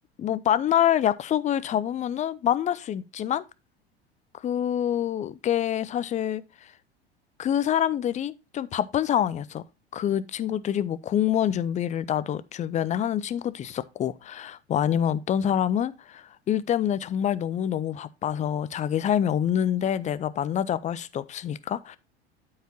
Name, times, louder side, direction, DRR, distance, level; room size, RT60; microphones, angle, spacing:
voice 1, 0.2-3.4 4.4-6.4 7.4-9.6 9.9-22.0, left 10 dB, 20° left, 0.5 m, -26 dB
12.5 x 4.8 x 2.8 m
figure-of-eight pair, 80°, 32 cm